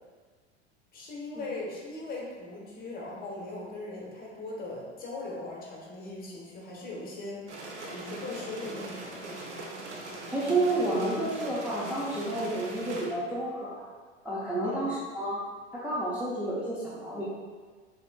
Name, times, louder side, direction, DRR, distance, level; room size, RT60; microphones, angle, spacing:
voice 1, 0.9-7.4 7.9-9.3 14.6-14.9, left 2 dB, 25° left, -3 dB, 1.2 m, -39 dB
sound 1, 7.5-13.1, right 2 dB, 75° right, 0.8 m, -41 dB
voice 2, 10.3-13.9 14.2-15.4 15.7-17.2, right 2 dB, 5° right, -9 dB, 0.7 m, -30 dB
6.6 x 2.8 x 2.3 m, 1.5 s
figure-of-eight pair, 80°, 35 cm